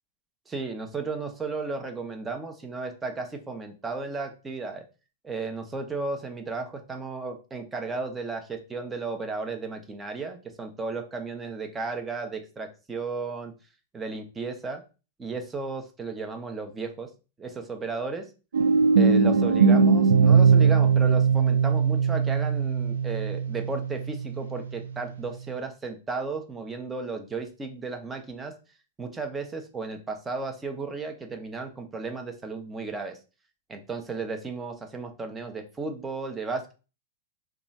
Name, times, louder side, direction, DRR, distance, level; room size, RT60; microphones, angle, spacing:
voice 1, 0.5-4.8 5.2-13.5 13.9-14.8 15.2-17.1 17.4-18.3 19.0-28.5 29.0-33.2 33.7-36.7, right 4 dB, 15° right, 5 dB, 0.7 m, -34 dB
sound 1, 18.5-24.4, right 5 dB, 75° right, 0.3 m, -20 dB
3.0 x 2.3 x 4.1 m, 0.32 s
figure-of-eight pair, 100°, 0 cm